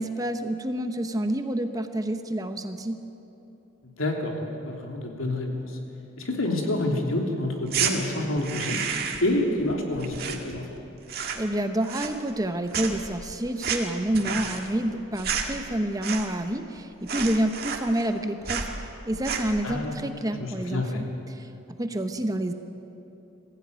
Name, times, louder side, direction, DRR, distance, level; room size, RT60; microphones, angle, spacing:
voice 1, 0.0-3.0 11.3-18.7 19.0-21.5 21.8-22.5, right 1 dB, 15° right, 7 dB, 0.9 m, -28 dB
voice 2, 3.8-5.8 6.2-8.8 9.2-10.8 14.2-14.4 19.6-19.9 20.4-21.0, left 1 dB, 85° left, 1 dB, 3.1 m, -28 dB
sound 1, 7.6-7.9 8.4-9.3 9.6-10.8 11.0-11.5 11.8-12.5 12.7-16.5 16.8-16.9 17.1-18.2 18.4-18.7 19.1-19.6, right 7 dB, 50° right, 1.8 m, -31 dB
21.5 x 15.0 x 9.4 m, 2.9 s
head